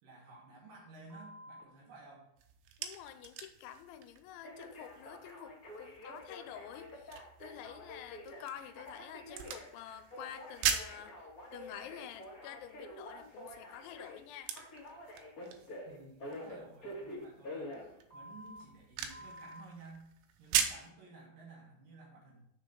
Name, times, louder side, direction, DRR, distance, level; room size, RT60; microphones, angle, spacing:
voice 1, 0.0-2.3 15.8-20.1 20.4-22.4, right 3 dB, 60° right, -2 dB, 2.7 m, -54 dB
Telephone, 1.1-1.6 4.4-18.6 19.1-19.6, left 1 dB, 40° left, 1.3 m, -48 dB
sound 1, 2.4-20.9, right 8 dB, 85° right, 3.0 m, -42 dB
voice 2, 2.8-14.6, left 10 dB, 90° left, 10 dB, 3.0 m, -49 dB
6.7 x 6.4 x 5.2 m, 0.73 s
omnidirectional pair, 5.2 m